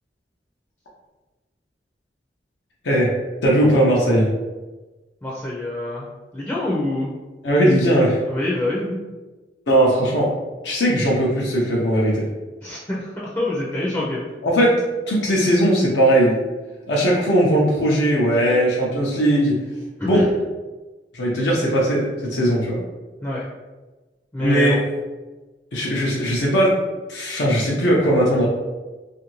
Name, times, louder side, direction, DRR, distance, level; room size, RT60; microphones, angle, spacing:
voice 1, 3.4-4.3 7.4-8.2 9.7-10.3 10.6-12.3 14.4-14.8 15.1-16.4 16.9-19.6 20.1-20.3 21.1-22.8 24.4-24.8 25.7-26.8 27.1-28.5, equal, 85° left, -4 dB, 0.6 m, -18 dB
voice 2, 5.2-6.0 6.3-7.1 8.3-9.0 12.6-14.3 20.0-20.3 23.2-23.4 24.3-24.8, left 1 dB, 15° left, -6 dB, 0.4 m, -26 dB
2.6 x 2.6 x 3.0 m, 1.2 s
head